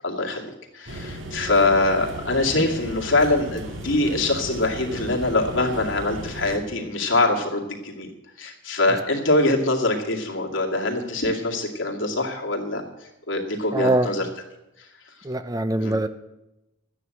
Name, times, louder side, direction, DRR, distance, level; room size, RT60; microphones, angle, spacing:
voice 1, 0.0-8.1 8.4-12.8 13.3-14.3 14.8-14.9 15.8-15.9, left 2 dB, 85° left, 1 dB, 2.4 m, -23 dB
sound 1, 0.9-6.6, right 1 dB, 75° right, 2.1 m, -35 dB
voice 2, 13.7-14.1 15.2-16.1, right 1 dB, 20° right, 11 dB, 0.6 m, -22 dB
12.0 x 9.7 x 7.8 m, 0.95 s
head